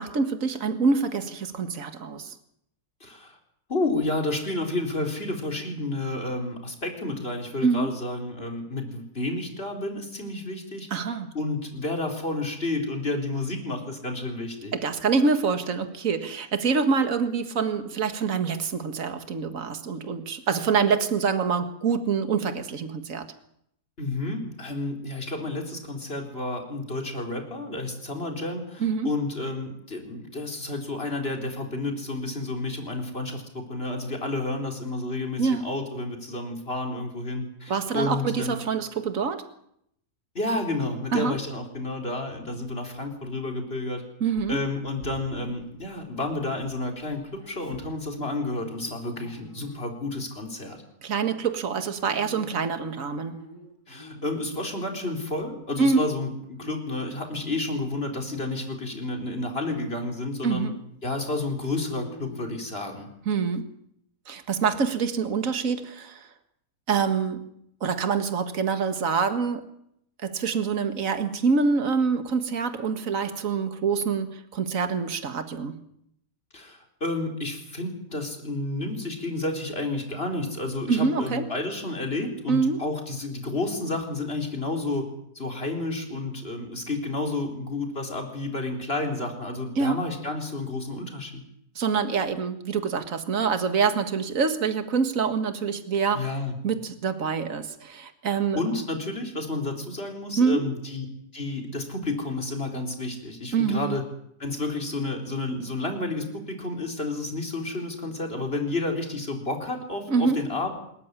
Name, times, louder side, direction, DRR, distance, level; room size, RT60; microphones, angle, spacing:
voice 1, 0.0-2.4 7.6-7.9 10.9-11.3 14.7-23.3 28.8-29.1 35.4-35.7 37.7-39.4 41.1-41.4 44.2-44.6 51.0-53.4 55.8-56.1 60.4-60.7 63.3-63.7 64.3-66.3 66.9-67.4 67.8-69.7 70.2-75.8 80.9-81.4 82.5-82.8 89.8-90.0 91.8-96.3 96.6-98.6 100.4-100.6 103.5-104.0 110.1-110.4, right 5 dB, 60° right, 9 dB, 2.1 m, -25 dB
voice 2, 3.0-3.4 3.7-10.9 11.3-14.7 24.0-38.6 40.3-44.0 44.5-50.8 53.9-60.7 61.0-63.1 76.5-85.1 85.3-91.4 96.1-96.5 98.6-101.1 101.3-104.0 104.4-110.8, left 2 dB, 40° left, 3 dB, 4.4 m, -31 dB
Dog, 44.3-46.6 46.9-50.2 50.6-50.9 51.7-54.8 55.2-56.0 56.4-56.8 57.1-58.4 58.8-59.1 59.7-59.8 60.1-60.2 60.9-63.2, left 1 dB, 90° left, 7.5 m, -48 dB
26.0 x 14.5 x 9.9 m, 0.72 s
omnidirectional pair, 1.6 m